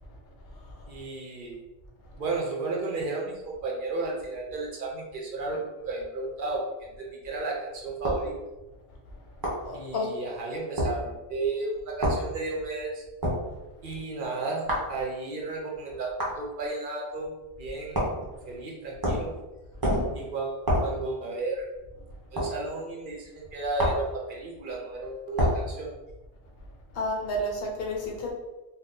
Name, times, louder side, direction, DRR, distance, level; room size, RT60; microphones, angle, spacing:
voice 1, 0.9-1.6 2.2-8.3 9.7-13.0 13.8-17.3 17.6-18.0 18.5-19.3 20.1-21.6 22.3-25.9, right 3 dB, 60° right, -1 dB, 0.8 m, -33 dB
sound 1, 8.0-8.3 9.4-9.6 10.8-10.9 12.0-12.2 13.2-13.4 14.7-14.9 16.2-16.4 17.9-18.2 19.0-19.3 19.8-20.1 20.7-20.9 22.4-22.5 23.8-24.1 25.4-25.6, equal, 25° right, 0.7 m, -26 dB
voice 2, 9.6-10.1 26.9-28.3, left 1 dB, 70° left, 0 dB, 0.9 m, -31 dB
2.6 x 2.3 x 3.6 m, 1.1 s
omnidirectional pair, 1.0 m